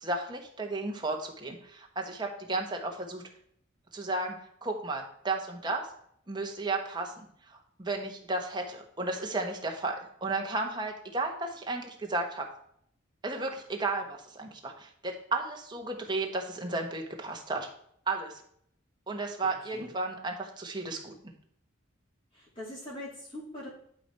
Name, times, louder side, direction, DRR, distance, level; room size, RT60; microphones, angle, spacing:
voice 1, 0.0-3.2 3.9-4.3 4.6-5.9 6.3-7.1 7.5-12.5 13.2-17.7 18.1-18.4 19.1-21.1, right 2 dB, 20° right, 2 dB, 1.2 m, -33 dB
voice 2, 22.3-23.7, left 1 dB, 25° left, -7 dB, 2.9 m, -42 dB
11.5 x 4.5 x 4.7 m, 0.66 s
head